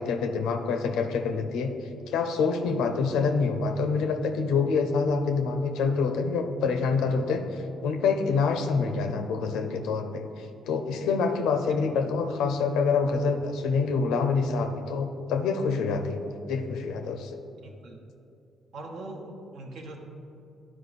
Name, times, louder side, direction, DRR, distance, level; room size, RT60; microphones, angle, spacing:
voice 1, 0.0-1.7 2.1-7.4 7.8-16.2 16.5-17.4, left 4 dB, 90° left, 6 dB, 0.6 m, -26 dB
voice 2, 11.8-12.1 17.6-18.0 18.7-20.0, right 2 dB, 75° right, 2 dB, 1.0 m, -42 dB
9.9 x 4.9 x 4.0 m, 2.7 s
cardioid pair, 90°, 0 cm